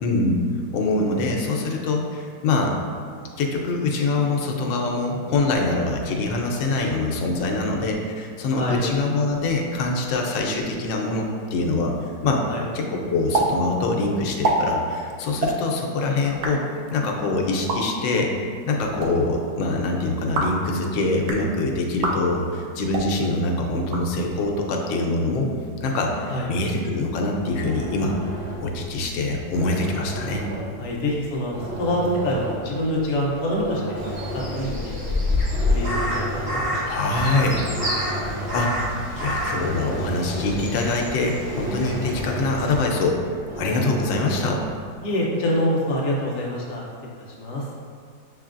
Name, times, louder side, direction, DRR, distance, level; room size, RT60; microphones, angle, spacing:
voice 1, 0.0-0.4 0.7-2.8 3.4-12.5 12.7-16.6 16.9-25.5 25.8-28.1 28.6-30.5 36.8-37.7 38.5-38.8 39.2-43.3 43.6-44.6, left 2 dB, 90° left, 1 dB, 1.3 m, -24 dB
sound 1, 13.3-13.5 13.7-13.8 14.3-14.6 15.3-15.5 16.2-16.5 17.5-17.8 18.8-19.1 20.2-20.6 21.1-21.4 21.9-22.2 22.8-23.1 23.8-24.5, right 3 dB, 70° right, 1.0 m, -26 dB
sound 2, 27.5-44.9, right 1 dB, 45° right, 0.9 m, -34 dB
voice 2, 30.8-34.0 34.3-35.4 35.7-37.0 45.0-47.1 47.4-47.7, left 1 dB, 55° left, -3 dB, 0.8 m, -26 dB
Crow, 34.0-42.8, left 1 dB, 25° right, 1.3 m, -28 dB
6.5 x 3.2 x 2.5 m, 2.1 s
omnidirectional pair, 1.9 m